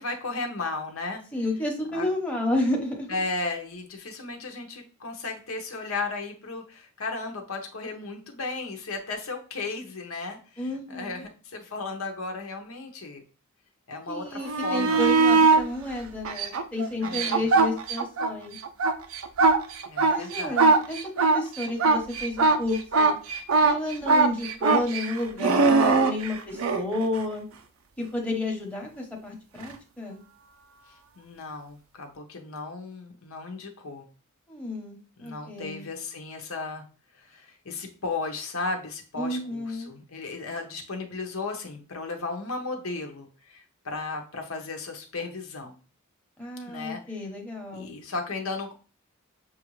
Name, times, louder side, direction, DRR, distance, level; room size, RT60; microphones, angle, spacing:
voice 1, 0.0-1.2 1.9-2.0 3.1-13.2 13.9-15.4 17.0-17.4 19.9-20.6 31.2-34.0 35.2-36.8 37.2-45.7 46.6-47.0 47.7-48.7, left 3 dB, 80° left, 3 dB, 0.9 m, -35 dB
voice 2, 1.3-3.1 10.6-11.2 14.1-18.6 20.0-23.2 23.6-27.4 28.0-30.2 34.5-35.9 39.2-39.9 46.4-47.9, left 1 dB, 5° left, -2 dB, 0.9 m, -31 dB
sound 1, 14.4-15.6 16.2-18.3 18.6-26.8 29.6-29.7, right 4 dB, 80° right, 0.5 m, -21 dB
6.2 x 2.5 x 3.1 m, 0.36 s
head